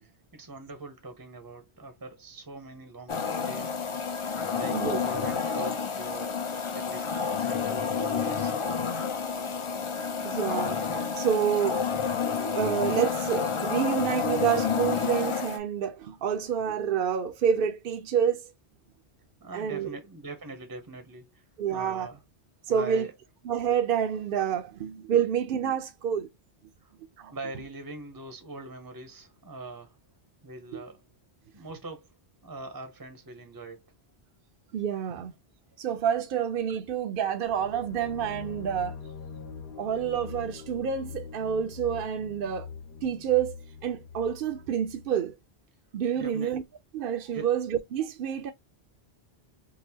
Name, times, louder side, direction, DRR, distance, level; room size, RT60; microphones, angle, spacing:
voice 1, 0.0-4.0 4.5-6.4 6.7-7.1 7.4-8.5 19.4-21.4 21.7-22.2 22.7-23.1 26.8-26.9 27.3-30.0 30.4-31.0 31.5-32.1 32.4-33.9 46.2-46.5 47.3-47.5, right 3 dB, 25° right, 0.6 m, -42 dB
sound 1, 3.1-15.6, left 6 dB, 45° left, 0.4 m, -29 dB
voice 2, 10.2-10.8 11.2-11.8 12.6-18.5 19.5-19.9 21.6-22.1 22.7-23.1 23.5-26.3 27.2-27.3 30.7-30.8 34.7-35.3 35.8-39.0 39.8-42.7 43.0-45.3 45.9-46.6 46.9-48.5, right 8 dB, 65° right, 0.7 m, -28 dB
sound 2, 37.5-45.2, left 6 dB, 70° left, 1.0 m, -43 dB
3.9 x 2.4 x 2.7 m
omnidirectional pair, 1.1 m